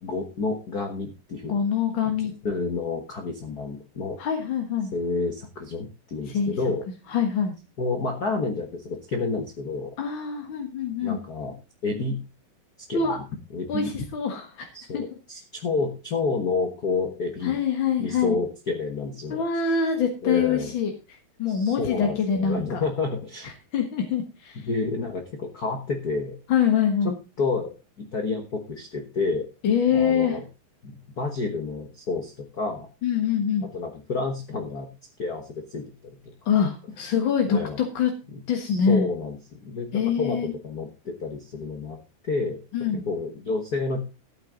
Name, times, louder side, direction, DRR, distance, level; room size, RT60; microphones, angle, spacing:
voice 1, 0.0-1.5 2.4-4.2 4.9-6.9 7.8-9.9 11.0-11.5 11.8-12.2 12.9-13.2 13.5-13.9 14.7-17.6 18.0-19.4 20.2-20.7 21.5-23.5 24.6-26.4 27.0-29.5 29.9-30.4 30.8-32.9 33.6-34.9 35.2-36.3 37.5-37.8 38.3-38.4 38.7-42.0 42.2-42.6 42.9-44.0, left 3 dB, 90° left, 5 dB, 0.8 m, -29 dB
voice 2, 1.5-2.3 4.2-4.9 6.3-6.5 7.1-7.5 10.0-11.2 12.9-13.2 13.7-14.7 14.9-15.0 17.4-18.4 19.3-20.9 21.4-22.8 23.7-24.7 26.5-27.1 29.6-30.4 33.0-33.7 36.4-38.1 38.5-39.1 39.9-40.5 42.7-43.1, left 7 dB, 50° left, 3 dB, 1.5 m, -24 dB
13.5 x 9.1 x 3.8 m, 0.29 s
omnidirectional pair, 4.0 m